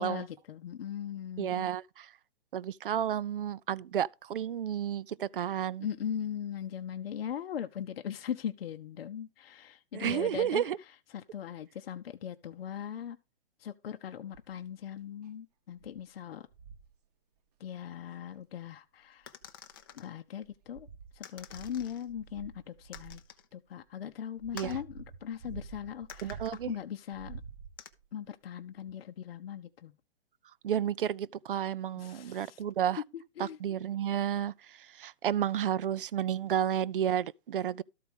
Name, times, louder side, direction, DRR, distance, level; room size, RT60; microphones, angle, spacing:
voice 1, 0.0-1.7 5.8-10.7 11.1-13.2 13.6-16.4 17.6-19.3 19.9-20.9 21.1-23.2 23.5-26.4 26.7-27.4 28.1-29.9 32.0-32.6 33.1-33.6, left 9 dB, 60° left, 0.8 m, -39 dB
voice 2, 1.4-2.1 2.5-5.9 9.9-10.8 24.5-24.8 26.2-26.7 30.6-33.0 33.4-37.8, right 10 dB, 55° right, 0.4 m, -31 dB
sound 1, 14.3-14.6 15.2-15.3 15.8-16.0 16.5-17.0 18.4-18.5 19.2-19.9 20.4-23.3 24.0-26.8 27.1-28.1 28.9-29.0, right 5 dB, 35° right, 0.8 m, -48 dB
sound 2, 19.3-20.1 21.2-22.1 22.9-23.5 24.6-24.8 26.1-26.6 27.8-27.9, left 9 dB, 20° left, 0.5 m, -48 dB
13.0 x 4.7 x 5.3 m
hypercardioid pair, 160°, 33 cm